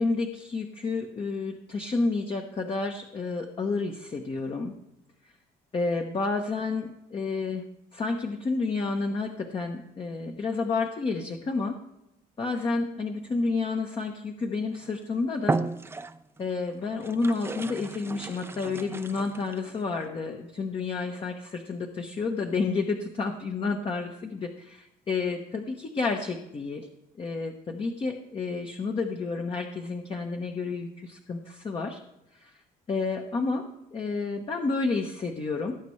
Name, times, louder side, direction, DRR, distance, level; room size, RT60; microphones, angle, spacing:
voice 1, 0.0-4.7 5.7-7.7 7.9-11.8 12.4-15.6 16.4-26.9 27.2-32.0 32.4-32.5 32.9-35.8, left 3 dB, 30° left, 3 dB, 1.0 m, -30 dB
sound 1, 14.7-15.0 15.4-16.4 17.0-19.8, right 3 dB, 15° right, 0.5 m, -33 dB
18.0 x 8.3 x 3.2 m, 0.91 s
cardioid pair, 110°, 17 cm